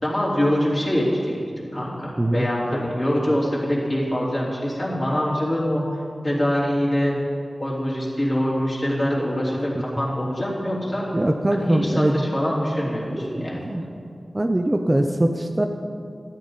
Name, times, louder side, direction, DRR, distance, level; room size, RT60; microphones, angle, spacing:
voice 1, 0.0-1.3 1.7-5.8 6.2-7.1 7.6-11.1 11.6-13.6, equal, 30° left, -6 dB, 3.2 m, -24 dB
voice 2, 2.2-2.5 2.7-2.9 9.9-10.1 11.1-12.3 13.1-13.8 14.3-15.7, right 1 dB, 25° right, 4 dB, 0.6 m, -22 dB
13.0 x 10.0 x 4.0 m, 2.4 s
wide cardioid pair, 70°, 0 cm